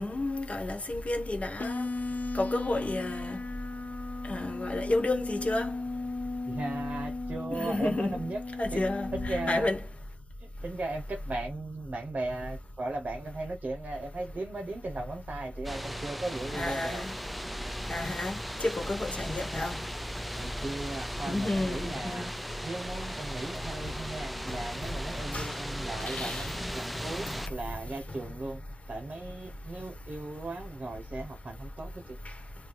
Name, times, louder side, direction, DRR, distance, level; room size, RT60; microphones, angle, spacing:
voice 1, 0.0-1.9 2.3-3.4 4.3-5.7 7.5-8.2 8.6-9.8 16.5-17.1 17.9-19.8 21.3-22.2 25.3-25.5 26.1-26.5, left 2 dB, 45° left, 1.1 m, -31 dB
sound 1, 1.6-9.6, left 3 dB, 75° left, 0.6 m, -36 dB
voice 2, 6.5-8.4 8.7-9.7 10.4-17.1 20.4-22.3 22.6-28.6 28.9-32.2, right 2 dB, 65° right, 0.7 m, -37 dB
sound 2, 15.6-27.5, equal, ahead, 0.3 m, -38 dB
3.2 x 2.2 x 3.8 m
wide cardioid pair, 75°, 3 cm